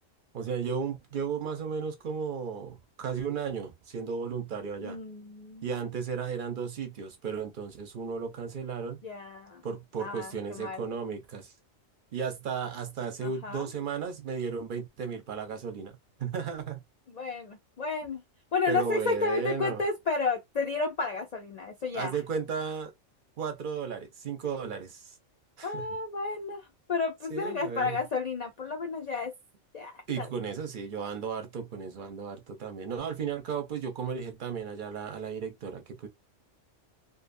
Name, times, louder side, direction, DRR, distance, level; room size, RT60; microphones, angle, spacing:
voice 1, 0.3-5.0 5.6-9.0 9.6-11.5 12.1-16.8 18.7-19.8 21.9-22.9 23.4-25.1 25.6-25.9 27.3-28.0 30.1-36.1, right 6 dB, 50° right, 0.6 m, -34 dB
voice 2, 4.8-5.8 9.0-9.6 10.0-10.8 13.2-13.7 17.1-18.2 18.5-22.2 25.6-29.3 29.7-30.3, left 4 dB, 75° left, 0.3 m, -32 dB
2.6 x 2.3 x 2.5 m
omnidirectional pair, 1.4 m